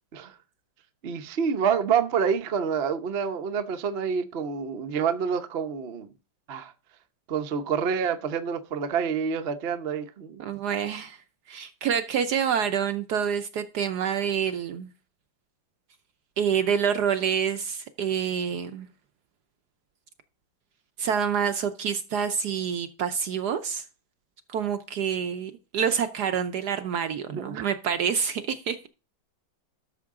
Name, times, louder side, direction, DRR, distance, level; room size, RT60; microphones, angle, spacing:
voice 1, 1.0-6.1 6.5-6.7 7.3-10.5 27.3-27.6, right 6 dB, 50° right, 0.7 m, -27 dB
voice 2, 10.4-11.2 11.5-14.9 16.4-18.9 21.0-23.9 24.5-28.9, right 7 dB, 65° right, 1.1 m, -27 dB
12.5 x 6.7 x 3.6 m
omnidirectional pair, 2.2 m